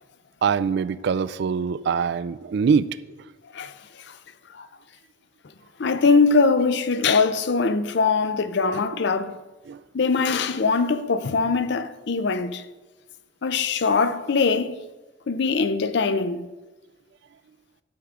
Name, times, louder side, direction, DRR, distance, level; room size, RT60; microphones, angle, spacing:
voice 1, 0.4-2.9 9.0-9.1 9.7-9.8, right 6 dB, 60° right, 0.3 m, -23 dB
voice 2, 5.8-9.4 9.9-12.6 13.4-14.8 15.3-16.5, left 4 dB, 65° left, 0.5 m, -22 dB
11.5 x 6.0 x 3.7 m
head